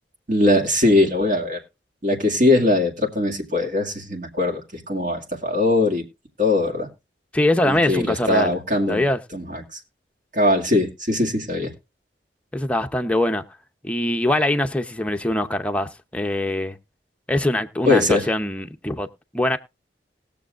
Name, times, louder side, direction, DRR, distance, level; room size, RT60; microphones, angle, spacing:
voice 1, 0.3-1.6 2.0-6.0 6.4-6.9 7.6-9.1 9.3-9.8 10.3-11.7 17.9-18.3, left 2 dB, 50° right, 2.1 m, -21 dB
voice 2, 7.3-8.5 8.9-9.2 12.5-13.4 13.8-16.8 17.3-19.1 19.3-19.6, left 1 dB, 5° left, 0.7 m, -22 dB
20.0 x 7.0 x 2.4 m
head